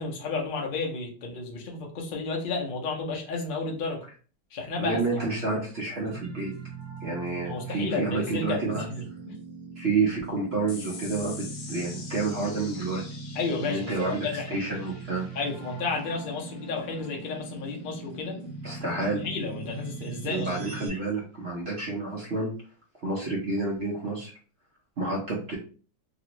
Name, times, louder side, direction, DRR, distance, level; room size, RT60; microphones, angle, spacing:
voice 1, 0.0-4.0 4.5-5.0 7.5-9.0 13.3-14.5 15.3-18.4 19.2-20.5, left 4 dB, 50° left, 0 dB, 0.6 m, -32 dB
voice 2, 4.8-6.5 7.0-8.9 9.8-13.0 13.6-15.3 18.6-19.2 20.3-22.5 23.0-24.3 25.0-25.6, right 3 dB, 55° right, -3 dB, 0.7 m, -29 dB
sound 1, 6.0-20.9, right 3 dB, 75° right, 1.4 m, -40 dB
sound 2, 10.7-17.5, left 4 dB, 75° left, 1.4 m, -46 dB
3.0 x 2.5 x 2.9 m, 0.39 s
omnidirectional pair, 1.9 m